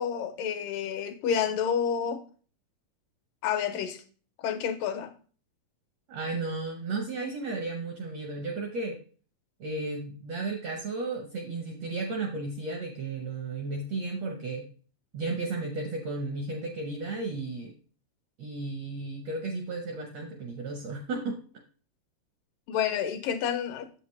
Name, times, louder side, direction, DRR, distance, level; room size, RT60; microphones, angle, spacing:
voice 1, 0.0-2.2 3.4-4.0 4.4-5.1 22.7-23.9, left 8 dB, 80° left, 2.2 m, -29 dB
voice 2, 6.1-9.0 9.6-14.7 15.1-17.7 18.4-21.4, right 3 dB, 75° right, 1.5 m, -34 dB
8.0 x 7.6 x 3.1 m
omnidirectional pair, 4.2 m